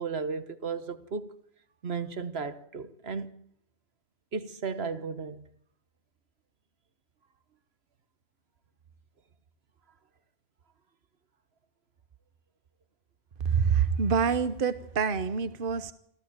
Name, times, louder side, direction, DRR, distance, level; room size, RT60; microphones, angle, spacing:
voice 1, 0.0-1.3 1.8-3.4 4.3-5.4, right 5 dB, 70° right, 1.5 m, -34 dB
voice 2, 13.4-15.9, right 6 dB, 55° right, 1.2 m, -26 dB
26.5 x 14.5 x 8.8 m
omnidirectional pair, 1.1 m